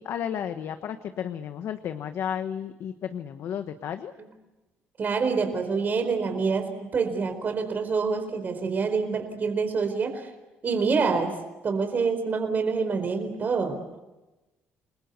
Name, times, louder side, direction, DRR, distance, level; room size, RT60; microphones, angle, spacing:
voice 1, 0.0-4.1 10.7-11.1, left 9 dB, 65° left, 8 dB, 1.3 m, -33 dB
voice 2, 5.0-10.3 10.6-11.3 11.6-13.8, right 5 dB, 40° right, 6 dB, 4.4 m, -26 dB
28.5 x 21.0 x 8.2 m, 1.1 s
cardioid pair, 125°, 5 cm